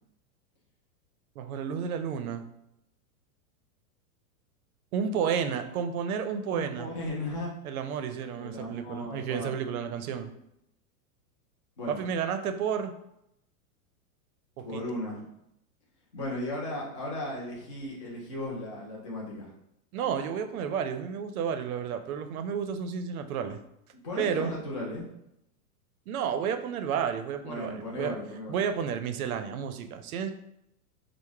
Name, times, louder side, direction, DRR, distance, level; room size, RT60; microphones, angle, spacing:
voice 1, 1.4-2.4 4.9-6.9 7.6-10.3 11.9-12.9 14.6-14.8 19.9-23.6 24.2-24.5 26.1-28.2 28.5-30.3, right 7 dB, 70° right, 8 dB, 0.6 m, -31 dB
voice 2, 6.5-7.6 8.4-9.6 11.8-12.0 14.6-15.3 16.1-19.5 24.0-25.1 27.4-28.7, left 1 dB, 25° left, -4 dB, 0.3 m, -36 dB
4.7 x 2.1 x 3.3 m, 0.80 s
supercardioid pair, 165°, 46 cm